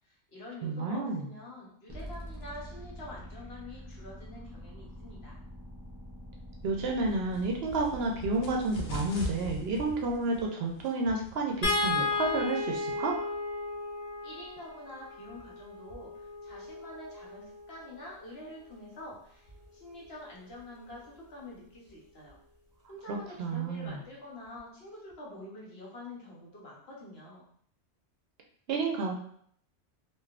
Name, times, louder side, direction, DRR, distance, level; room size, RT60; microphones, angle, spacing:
voice 1, 0.0-5.4 14.2-22.4 22.9-27.4, left 1 dB, 65° left, -4 dB, 1.1 m, -47 dB
voice 2, 0.6-1.3 6.6-13.2 23.1-24.0 28.7-29.1, right 3 dB, 65° right, 1 dB, 0.7 m, -31 dB
sound 1, 1.9-9.9, equal, 25° right, 0.6 m, -46 dB
sound 2, 6.8-13.0, left 1 dB, 90° left, 0.9 m, -43 dB
sound 3, 11.6-17.9 19.5-19.6 20.0-20.2, left 3 dB, 45° left, 0.6 m, -34 dB
3.3 x 2.5 x 2.4 m, 0.63 s
omnidirectional pair, 1.2 m